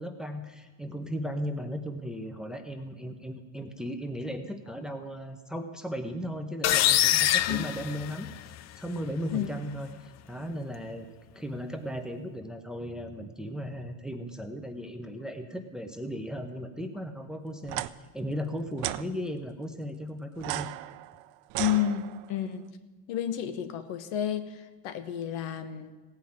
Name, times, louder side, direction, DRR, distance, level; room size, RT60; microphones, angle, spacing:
voice 1, 0.0-8.3 8.8-17.9 18.1-20.7, equal, ahead, 6 dB, 0.9 m, -36 dB
sound 1, 6.6-8.6, left 13 dB, 35° left, 0.4 m, -24 dB
sound 2, 17.6-17.9 18.8-19.0 20.4-22.4, right 17 dB, 70° right, 0.7 m, -35 dB
voice 2, 21.6-22.6 23.1-25.9, left 10 dB, 70° left, 10 dB, 1.4 m, -31 dB
17.0 x 5.6 x 8.9 m, 1.3 s
supercardioid pair, 120°, 47 cm